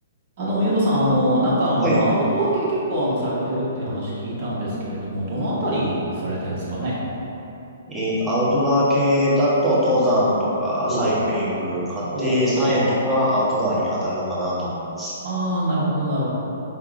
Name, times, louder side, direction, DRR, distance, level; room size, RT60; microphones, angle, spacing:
voice 1, 0.4-7.0 10.8-11.1 12.1-12.8 15.2-16.3, right 1 dB, 50° right, -7 dB, 1.3 m, -23 dB
voice 2, 7.9-15.1, equal, 10° right, -9 dB, 1.1 m, -21 dB
4.7 x 3.5 x 2.4 m, 2.9 s
hypercardioid pair, 125°, 0 cm